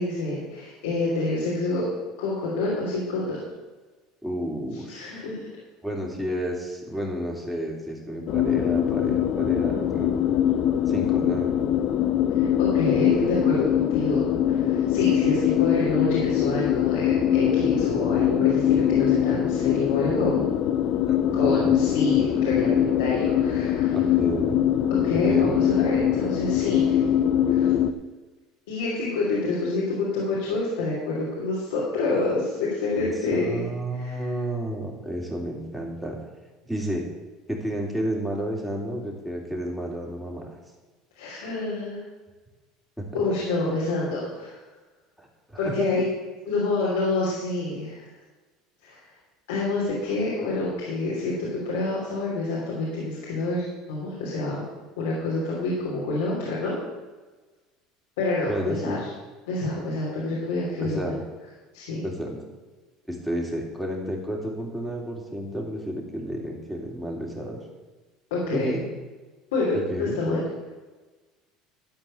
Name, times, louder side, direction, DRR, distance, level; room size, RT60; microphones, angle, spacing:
voice 1, 0.0-1.9 2.2-3.4 4.7-5.5 12.3-20.4 21.3-24.0 24.9-27.1 27.5-27.7 28.7-33.6 33.9-34.3 41.1-42.0 43.1-44.6 45.6-46.0 46.4-48.1 48.8-49.1 49.5-54.6 55.0-56.7 58.2-59.1 59.5-61.0 61.7-62.0 68.3-68.7 69.5-70.4, left 2 dB, 90° left, -5 dB, 3.2 m, -27 dB
voice 2, 4.2-5.2 5.8-10.2 10.9-11.7 21.1-21.8 23.9-24.6 25.3-25.5 32.9-36.2 36.6-37.0 37.5-40.4 43.0-43.2 45.2-45.3 45.5-45.9 58.5-59.0 60.8-61.2 62.0-62.4 63.1-67.6 68.5-68.8 69.7-70.2, equal, 5° right, -2 dB, 3.2 m, -31 dB
sound 1, 8.3-27.9, left 10 dB, 60° left, 0.6 m, -22 dB
12.5 x 4.8 x 8.6 m, 1.3 s
supercardioid pair, 95°, 0 cm